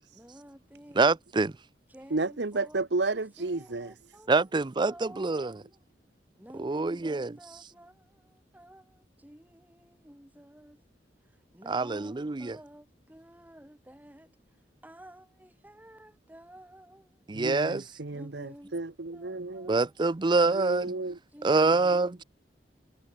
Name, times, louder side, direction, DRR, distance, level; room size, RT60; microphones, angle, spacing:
voice 1, 0.1-1.2 1.9-2.8 3.5-4.4 4.9-5.7 6.4-10.8 11.5-14.3 14.8-17.1 18.1-18.7 19.1-19.9 21.3-21.5, right 1 dB, 10° right, 3.8 m, -52 dB
voice 2, 0.9-1.5 4.3-5.6 6.5-7.4 11.7-12.6 17.3-17.8 19.7-20.9 21.4-22.2, right 3 dB, 25° right, 0.5 m, -26 dB
voice 3, 2.1-4.2 17.3-19.7 20.4-22.0, right 3 dB, 75° right, 1.1 m, -33 dB
head